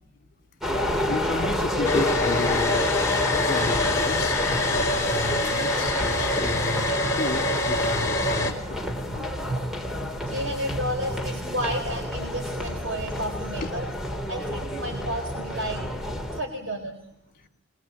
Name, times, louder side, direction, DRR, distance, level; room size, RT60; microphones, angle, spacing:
sound 1, 0.6-16.4, left 1 dB, ahead, 2.4 m, -29 dB
voice 1, 1.1-3.1 3.4-9.3 11.4-11.5 13.6-13.7 14.2-14.3, left 2 dB, 45° left, 3.0 m, -33 dB
Domestic sounds home sounds, 1.8-8.5, left 2 dB, 15° left, 4.0 m, -26 dB
voice 2, 9.0-13.9 14.1-15.8 16.3-17.1, equal, 80° right, 4.1 m, -32 dB
23.0 x 21.5 x 7.6 m
head